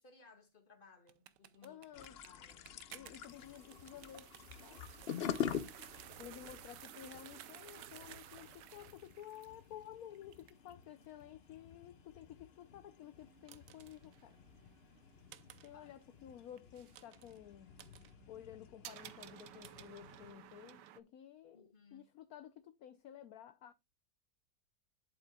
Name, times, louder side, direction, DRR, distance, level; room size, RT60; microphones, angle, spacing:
voice 1, 0.0-1.8 2.2-3.2 5.2-5.8 15.7-15.9 21.5-22.1, left 4 dB, 30° left, 2.0 m, -63 dB
sound 1, 1.1-21.0, right 12 dB, 85° right, 1.3 m, -56 dB
voice 2, 1.6-2.2 2.9-4.3 4.6-4.8 6.2-14.4 15.6-17.7 18.3-23.7, left 11 dB, 65° left, 1.1 m, -53 dB
sound 2, 1.9-20.3, left 8 dB, 85° left, 0.5 m, -48 dB
10.5 x 7.8 x 2.3 m
omnidirectional pair, 1.8 m